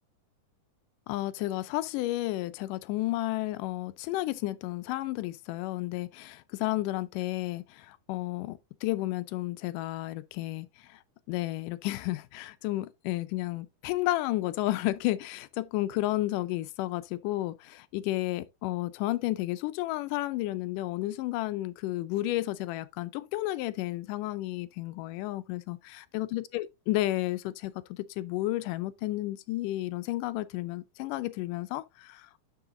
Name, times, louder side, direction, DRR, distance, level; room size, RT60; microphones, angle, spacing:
voice 1, 1.1-11.0 11.3-32.4, left 17 dB, 80° left, 2.1 m, -32 dB
11.0 x 5.6 x 2.6 m
omnidirectional pair, 3.9 m